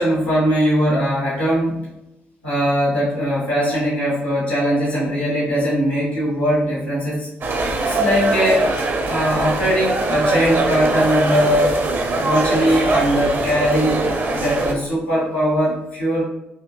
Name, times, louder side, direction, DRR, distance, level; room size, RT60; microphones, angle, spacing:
voice 1, 0.0-1.8 2.4-7.3 7.8-8.7 9.0-11.8 12.1-14.1 14.3-16.2, equal, 85° left, -8 dB, 1.4 m, -20 dB
sound 1, 7.4-14.7, right 2 dB, 45° right, 0.6 m, -21 dB
4.9 x 2.7 x 2.4 m, 0.89 s
figure-of-eight pair, 40°, 5 cm